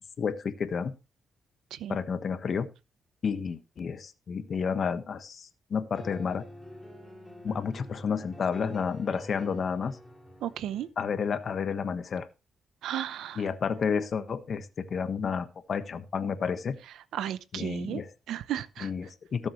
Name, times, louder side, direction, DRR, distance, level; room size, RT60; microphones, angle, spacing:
voice 1, 0.2-0.9 1.9-2.7 3.2-6.4 7.4-10.0 11.0-12.3 13.3-16.8 17.5-18.1 18.8-19.5, left 6 dB, 55° left, 1.3 m, -31 dB
sound 1, 5.7-10.9, equal, ahead, 3.5 m, -46 dB
voice 2, 10.4-10.9 12.8-13.4 17.1-18.0 18.3-18.9, right 11 dB, 85° right, 0.7 m, -34 dB
18.0 x 7.2 x 3.1 m
cardioid pair, 85°, 0 cm